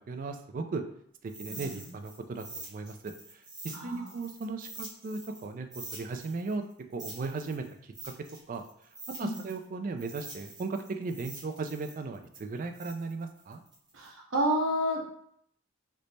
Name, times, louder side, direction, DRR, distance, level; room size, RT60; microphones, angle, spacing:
voice 1, 0.1-0.8 1.2-6.6 6.9-8.1 8.5-8.6 9.2-13.6, right 3 dB, 40° right, 6 dB, 0.3 m, -37 dB
sound 1, 1.3-5.5 5.7-9.6 10.0-14.1, right 2 dB, 20° right, 0.7 m, -46 dB
voice 2, 1.5-1.9 3.7-4.2 9.2-9.4 13.9-15.0, equal, 70° right, -3 dB, 0.9 m, -30 dB
3.2 x 2.1 x 3.9 m, 0.67 s
head